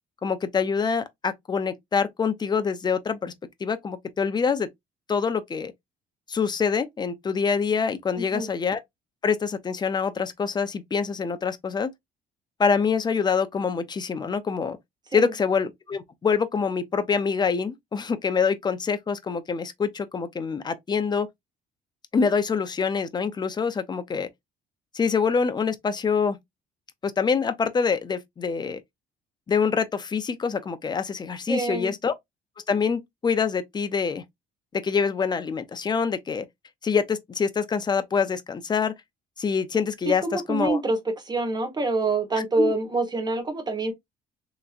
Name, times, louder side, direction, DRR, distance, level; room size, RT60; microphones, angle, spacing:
voice 1, 0.2-3.3 3.6-4.7 5.1-5.7 6.3-8.8 9.2-11.9 12.6-14.8 15.1-21.3 22.1-24.3 24.9-26.4 27.0-28.8 29.5-32.1 32.7-34.2 34.7-36.5 36.8-38.9 39.4-40.8 42.6-42.7, left 5 dB, 25° left, 0.6 m, -25 dB
voice 2, 8.1-8.5 15.1-15.3 31.5-31.9 40.2-41.0 41.2-43.9, right 3 dB, 25° right, 1.5 m, -26 dB
3.3 x 3.0 x 2.4 m
cardioid pair, 110°, 17 cm